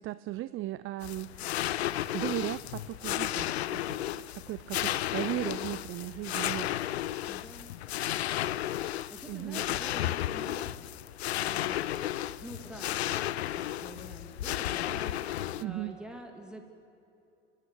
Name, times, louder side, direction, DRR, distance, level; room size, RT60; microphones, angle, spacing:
voice 1, 0.0-1.5 2.1-6.7 9.3-9.6 15.6-15.9, right 15 dB, 40° right, 15 dB, 0.6 m, -36 dB
sound 1, 1.0-15.6, left 13 dB, 85° left, 0.6 m, -33 dB
voice 2, 7.3-7.7 8.8-11.0 11.3-16.6, equal, 5° right, 3 dB, 3.0 m, -47 dB
29.0 x 12.0 x 9.4 m, 2.8 s
hypercardioid pair, 85°, 32 cm